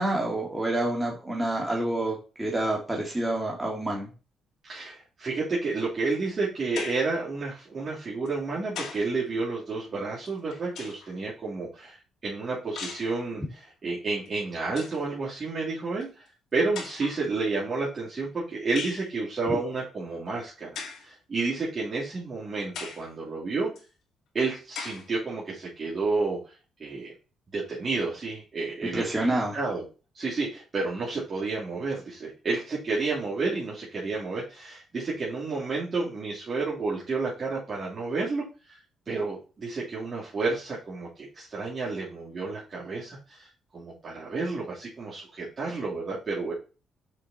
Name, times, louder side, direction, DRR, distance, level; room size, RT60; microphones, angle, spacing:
voice 1, 0.0-4.1 19.5-19.6 28.9-29.6, right 1 dB, 10° right, -1 dB, 2.3 m, -28 dB
voice 2, 4.6-16.3 16.5-23.7 24.3-26.4 26.8-27.1 27.5-29.8 30.1-38.8 39.1-43.5 43.7-46.5, right 3 dB, 35° right, -7 dB, 3.1 m, -31 dB
sound 1, 6.8-7.2 8.3-9.1 10.3-11.2 12.8-13.1 14.3-14.4 14.6-15.0 16.0-16.1 16.7-17.3 18.8-19.1 20.7-21.1 21.8-21.9 22.7-23.1 23.8-23.9 24.7-25.1, left 5 dB, 75° left, 2.2 m, -38 dB
6.7 x 4.9 x 4.3 m, 0.33 s
cardioid pair, 90°, 0 cm